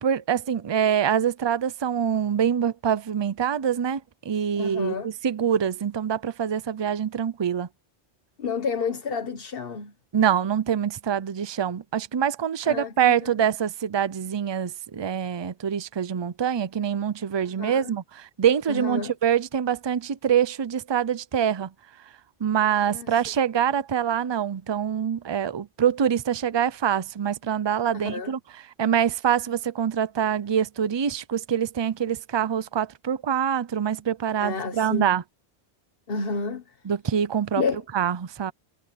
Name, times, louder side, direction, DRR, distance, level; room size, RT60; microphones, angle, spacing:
voice 1, 0.0-7.7 10.1-21.7 22.4-35.2 36.8-37.6 37.9-38.5, right 8 dB, 35° right, 0.5 m, -25 dB
voice 2, 4.5-5.1 8.4-9.9 12.6-13.3 17.6-17.9 18.7-19.1 22.9-23.2 27.9-28.3 34.4-35.1 36.1-36.6 37.6-37.8, left 4 dB, 55° left, 1.5 m, -30 dB
omnidirectional pair, 1.1 m